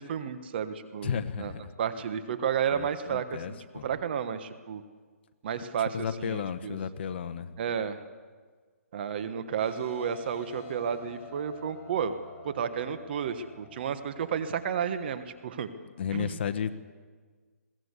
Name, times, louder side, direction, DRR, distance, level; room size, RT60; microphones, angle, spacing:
voice 1, 0.0-1.5 1.8-3.6 3.8-4.8 5.4-6.8 7.6-8.0 8.9-12.1 12.4-15.7 16.1-16.4, right 8 dB, 40° right, 11 dB, 1.3 m, -32 dB
voice 2, 1.0-1.7 2.7-3.8 5.9-7.5 16.0-16.8, left 7 dB, 45° left, 11 dB, 1.2 m, -33 dB
sound 1, 9.6-15.2, left 4 dB, 20° left, 5.3 m, -50 dB
22.0 x 17.0 x 8.3 m, 1.5 s
hypercardioid pair, 155°, 8 cm